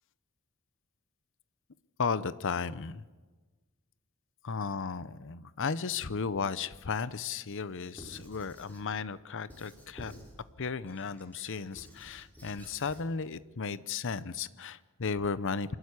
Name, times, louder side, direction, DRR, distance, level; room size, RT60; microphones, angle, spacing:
voice 1, 2.0-3.0 4.4-10.1 10.6-15.8, left 5 dB, 60° left, 16 dB, 0.8 m, -34 dB
Squeak / Writing, 7.9-8.9 9.5-10.4 10.9-13.1, equal, 10° left, 5.2 m, -51 dB
26.5 x 13.0 x 9.7 m, 1.2 s
head